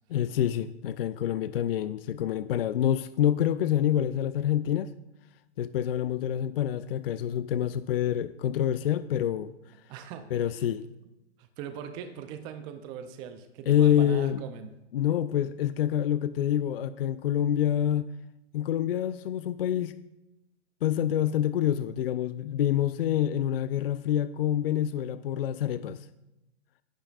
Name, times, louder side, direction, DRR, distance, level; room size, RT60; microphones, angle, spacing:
voice 1, 0.1-4.9 5.6-9.5 10.3-10.8 13.7-14.4 14.9-18.1 18.5-19.9 20.8-26.1, left 10 dB, 55° left, 0.5 m, -27 dB
voice 2, 9.9-10.7 11.4-14.7, right 8 dB, 15° right, 0.4 m, -40 dB
25.5 x 9.1 x 2.4 m
hypercardioid pair, 125°, 36 cm